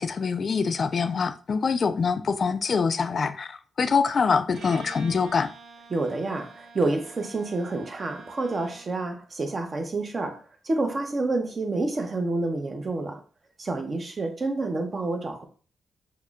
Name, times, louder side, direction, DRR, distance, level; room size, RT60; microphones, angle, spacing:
voice 1, 0.0-5.5, left 5 dB, 55° left, 0.4 m, -25 dB
Bowed string instrument, 4.5-9.0, right 4 dB, 80° right, 0.5 m, -47 dB
voice 2, 5.9-13.2 13.6-15.4, right 2 dB, 40° right, 0.8 m, -28 dB
5.4 x 2.1 x 2.4 m
cardioid pair, 65°, 0 cm